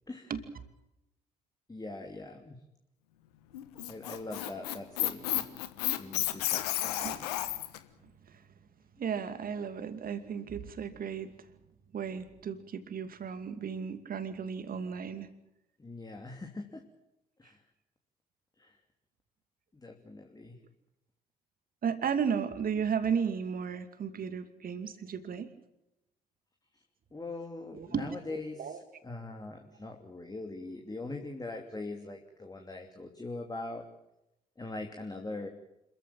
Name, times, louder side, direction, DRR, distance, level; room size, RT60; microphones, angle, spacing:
voice 1, 1.7-2.6 3.8-5.4 5.9-7.5 15.8-16.8 17.4-17.6 18.6-18.7 19.7-20.5 27.1-33.8 34.6-35.5, left 2 dB, 20° left, 3 dB, 2.9 m, -42 dB
Squeak, 3.5-7.8, left 14 dB, 80° left, 1.3 m, -32 dB
voice 2, 9.0-11.3 11.9-15.3 21.8-25.5 27.7-28.8, right 7 dB, 45° right, 10 dB, 2.5 m, -34 dB
27.0 x 14.5 x 8.9 m, 0.89 s
figure-of-eight pair, 50°, 20 cm